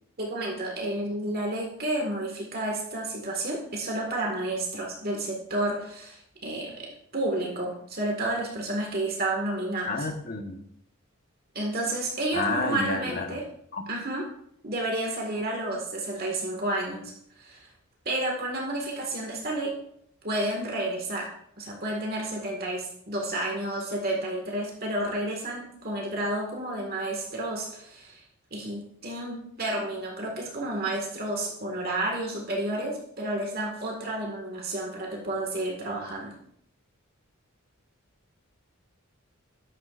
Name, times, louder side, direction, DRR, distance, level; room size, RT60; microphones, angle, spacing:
voice 1, 0.2-10.1 11.5-13.4 13.9-14.2 14.6-17.7 18.1-19.7 20.2-21.3 21.6-28.2 28.5-36.3, right 1 dB, 45° right, -1 dB, 1.9 m, -31 dB
voice 2, 9.9-10.6 12.3-13.4 13.7-13.8, left 3 dB, 45° left, 5 dB, 1.3 m, -30 dB
13.5 x 10.0 x 2.5 m, 0.71 s
head